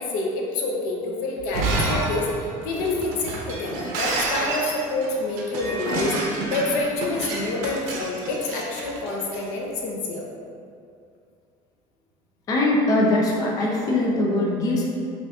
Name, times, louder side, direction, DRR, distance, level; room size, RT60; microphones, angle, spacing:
voice 1, 0.0-2.3 2.6-10.3, left 2 dB, 80° left, -1 dB, 0.7 m, -27 dB
Shatter, 1.4-9.4, right 2 dB, 85° right, 0.7 m, -29 dB
voice 2, 12.5-14.8, left 2 dB, 25° left, -3 dB, 0.4 m, -21 dB
5.7 x 2.6 x 2.3 m, 2.4 s
cardioid pair, 175°, 14 cm